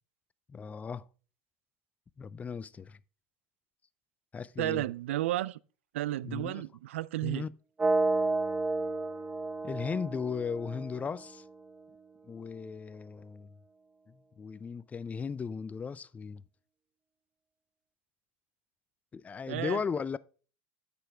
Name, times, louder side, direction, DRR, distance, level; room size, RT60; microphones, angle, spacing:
voice 1, 0.5-1.0 2.2-3.0 4.3-4.9 6.2-6.6 7.2-7.5 9.6-11.4 12.2-13.5 14.1-16.4 19.1-20.2, left 6 dB, 20° left, 0.4 m, -36 dB
voice 2, 4.6-5.6 5.9-7.5 19.5-19.8, right 15 dB, 75° right, 0.4 m, -32 dB
sound 1, 7.8-11.7, right 2 dB, 15° right, 0.8 m, -31 dB
8.8 x 6.9 x 3.4 m
hypercardioid pair, 85°, 7 cm